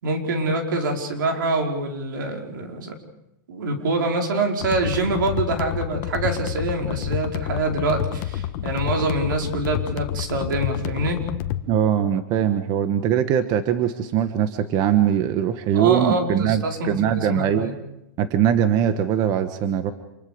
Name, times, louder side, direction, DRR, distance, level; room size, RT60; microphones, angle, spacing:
voice 1, 0.0-2.9 3.5-11.2 15.7-17.7, right 2 dB, 80° right, 2 dB, 5.0 m, -25 dB
sound 1, 4.6-11.6, left 12 dB, 45° left, 1.4 m, -29 dB
voice 2, 11.7-17.7 18.2-19.9, right 9 dB, 35° right, 9 dB, 1.3 m, -21 dB
27.5 x 23.0 x 5.3 m, 0.85 s
supercardioid pair, 145°, 11 cm